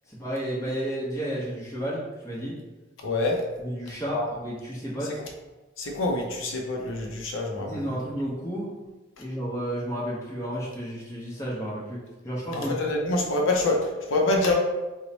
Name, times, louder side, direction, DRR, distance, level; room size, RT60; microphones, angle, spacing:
voice 1, 0.1-2.6 3.6-5.2 7.6-8.7 9.2-12.0 12.2-12.7 13.0-13.1, equal, 15° left, -6 dB, 0.8 m, -32 dB
voice 2, 3.0-3.4 4.1-4.2 5.8-7.8 12.5-14.5, left 2 dB, 80° left, 0 dB, 0.6 m, -26 dB
3.1 x 2.1 x 3.9 m, 1.2 s
head